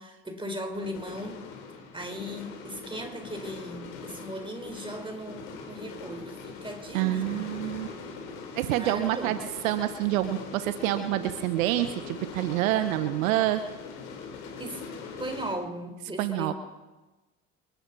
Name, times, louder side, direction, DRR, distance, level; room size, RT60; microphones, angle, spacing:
voice 1, 0.0-1.4 1.9-7.5 8.7-9.4 14.6-14.9 15.2-16.5, equal, 10° right, 5 dB, 4.1 m, -38 dB
sound 1, 0.7-15.5, left 5 dB, 75° left, 3.6 m, -42 dB
voice 2, 6.9-7.9 8.5-9.4 9.6-13.6 16.2-16.5, right 14 dB, 75° right, 11 dB, 1.0 m, -27 dB
28.5 x 12.0 x 4.1 m, 1.1 s
hypercardioid pair, 60°, 41 cm